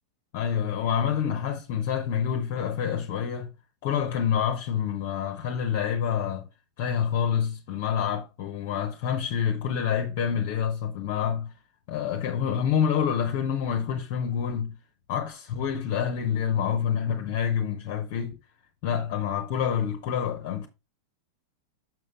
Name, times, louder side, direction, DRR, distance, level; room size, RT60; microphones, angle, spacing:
voice 1, 0.3-3.5 3.8-6.5 6.8-11.5 11.9-14.8 15.1-18.4 18.8-20.7, left 8 dB, 45° left, 0.9 m, -27 dB
6.6 x 6.1 x 3.5 m
figure-of-eight pair, 90°, 0 cm